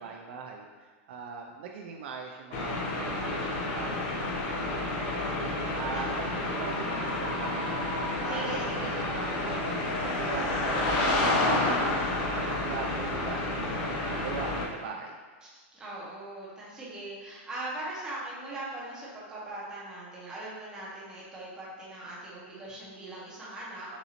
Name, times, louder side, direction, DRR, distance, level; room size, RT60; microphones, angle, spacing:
voice 1, 0.0-4.3 5.4-7.7 8.2-15.2 23.9-24.0, right 5 dB, 55° right, 2 dB, 0.4 m, -41 dB
sound 1, 2.5-14.7, left 2 dB, 30° left, 0.6 m, -30 dB
voice 2, 4.9-6.5 6.8-7.2 8.0-9.1 15.5-24.0, right 2 dB, 10° right, -7 dB, 1.0 m, -41 dB
sound 2, 6.3-8.9, equal, 85° left, 1.5 m, -40 dB
6.7 x 2.7 x 2.9 m, 1.4 s
supercardioid pair, 175°, 7 cm